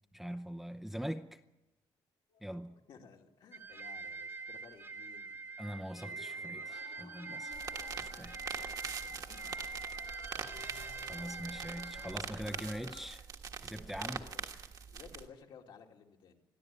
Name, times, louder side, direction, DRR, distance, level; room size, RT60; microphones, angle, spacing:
voice 1, 0.1-1.4 2.4-2.8 5.6-7.6 8.2-8.7 10.6-13.3 13.6-14.2, equal, ahead, 0.7 m, -43 dB
sound 1, 2.3-5.3 5.7-13.1, left 6 dB, 90° left, 5.5 m, -56 dB
voice 2, 2.9-5.4 7.7-9.5 13.8-14.4 14.9-16.4, left 6 dB, 65° left, 2.6 m, -57 dB
sound 2, 3.5-12.2, right 4 dB, 25° right, 1.2 m, -44 dB
sound 3, 7.5-15.3, right 6 dB, 45° right, 1.4 m, -43 dB
22.0 x 13.5 x 9.0 m
cardioid pair, 160°, 9 cm